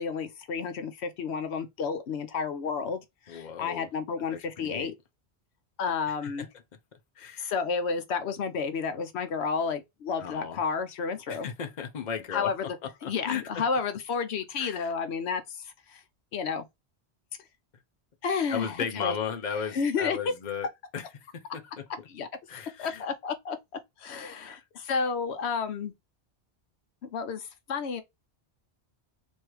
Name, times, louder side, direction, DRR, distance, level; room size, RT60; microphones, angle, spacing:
voice 1, 0.0-4.9 5.8-6.5 7.4-11.5 12.3-12.7 13.0-16.0 16.3-16.7 18.2-19.1 19.7-20.2 22.1-22.3 22.8-23.6 24.0-25.9 27.1-28.0, left 5 dB, 80° left, 0.9 m, -31 dB
voice 2, 3.3-3.9 4.3-4.9 6.2-6.5 7.2-7.5 10.2-10.6 11.3-12.5 13.0-13.6 14.6-14.9 18.5-20.7 20.9-21.8 22.5-23.0 24.4-24.6, left 7 dB, 45° left, 0.8 m, -35 dB
3.2 x 2.7 x 4.5 m
omnidirectional pair, 1.1 m